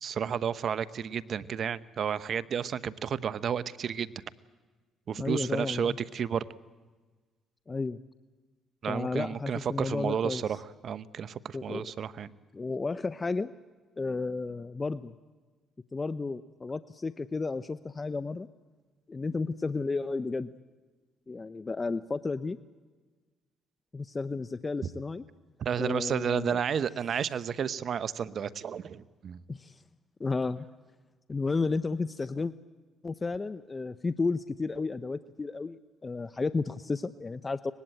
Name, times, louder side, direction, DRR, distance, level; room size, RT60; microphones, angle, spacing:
voice 1, 0.0-4.1 5.1-6.4 8.8-12.3 25.6-29.4, right 7 dB, 60° right, 16 dB, 0.9 m, -32 dB
voice 2, 5.2-6.0 7.7-8.0 8.9-10.4 11.5-11.9 12.5-13.5 14.0-15.1 15.9-18.5 19.1-20.5 21.3-22.6 23.9-25.2 25.8-26.6 29.5-29.8 30.2-30.7 31.3-32.5 33.0-37.7, left 3 dB, 30° left, 13 dB, 0.7 m, -32 dB
24.0 x 20.0 x 9.1 m, 1.4 s
supercardioid pair, 65°, 0 cm